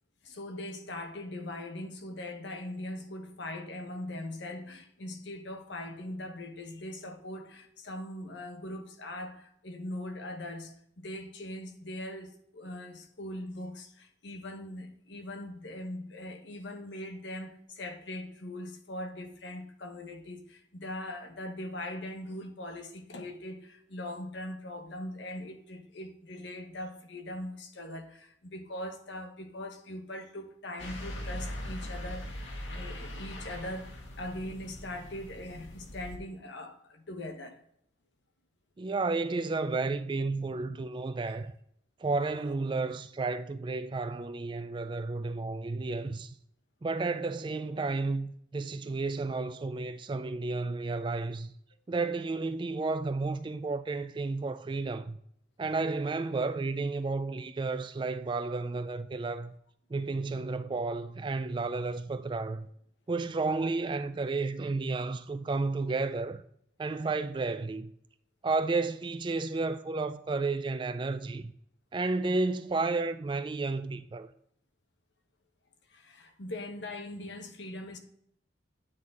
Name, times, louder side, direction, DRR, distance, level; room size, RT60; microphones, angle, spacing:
voice 1, 0.2-33.9 34.2-37.6 75.9-78.0, left 1 dB, 70° left, 1.0 m, -41 dB
sound 1, 30.8-36.2, equal, 90° left, 1.5 m, -41 dB
voice 2, 38.8-41.5 42.0-46.3 46.8-51.5 51.9-55.2 55.6-59.5 59.9-62.7 63.1-66.4 66.8-67.9 68.4-71.5 71.9-74.3, right 3 dB, 25° right, 0.3 m, -32 dB
9.4 x 4.0 x 3.5 m
head